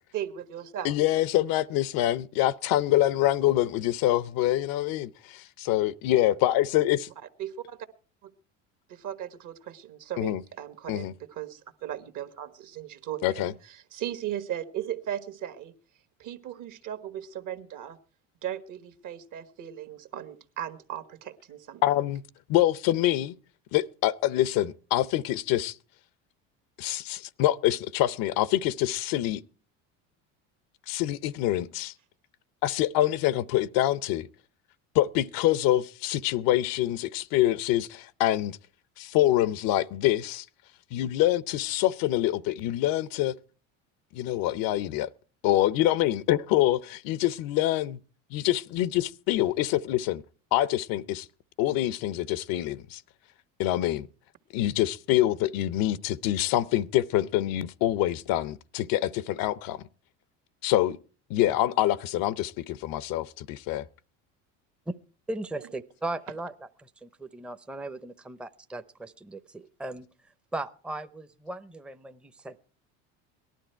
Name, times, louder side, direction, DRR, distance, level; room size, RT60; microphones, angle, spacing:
voice 1, 0.1-0.9 7.4-7.9 8.2-8.3 8.9-15.7 16.2-18.0 18.4-21.8, right 11 dB, 55° right, 1.6 m, -37 dB
voice 2, 0.8-7.1 10.2-10.4 10.9-11.1 13.2-13.5 21.8-22.2 22.5-23.4 23.7-25.8 26.8-29.4 30.9-31.9 32.6-34.3 34.9-38.6 39.0-40.4 40.9-43.4 44.1-45.1 45.4-48.0 48.3-50.2 50.5-51.3 51.6-53.0 53.6-54.1 54.5-59.8 60.6-61.0 61.3-63.8, left 14 dB, 65° left, 0.7 m, -25 dB
voice 3, 65.3-66.5 66.8-70.1 70.5-72.6, right 2 dB, 5° right, 0.7 m, -37 dB
18.5 x 12.0 x 4.5 m
supercardioid pair, 85°, 38 cm